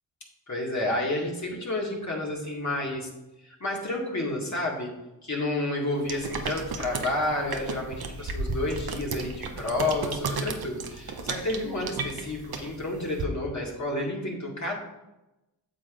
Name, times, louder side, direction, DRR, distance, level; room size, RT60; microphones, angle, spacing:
voice 1, 0.5-3.1 3.4-4.9 5.2-14.8, left 1 dB, 45° left, -3 dB, 2.0 m, -30 dB
sound 1, 6.0-13.2, right 3 dB, 60° right, 0.9 m, -34 dB
9.1 x 6.6 x 2.5 m, 0.95 s
cardioid pair, 50°, 41 cm